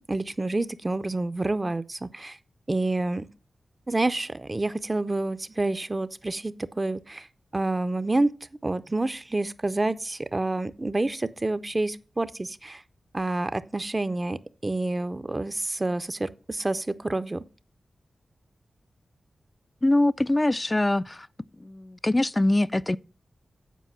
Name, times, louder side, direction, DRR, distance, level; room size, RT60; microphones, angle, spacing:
voice 1, 0.1-2.4 2.7-3.2 3.9-7.3 7.5-8.3 8.6-12.8 13.1-17.4, right 2 dB, 30° right, 0.5 m, -28 dB
voice 2, 19.8-21.3 21.6-23.0, left 1 dB, 25° left, 0.3 m, -23 dB
8.3 x 4.6 x 5.6 m
cardioid pair, 45°, 0 cm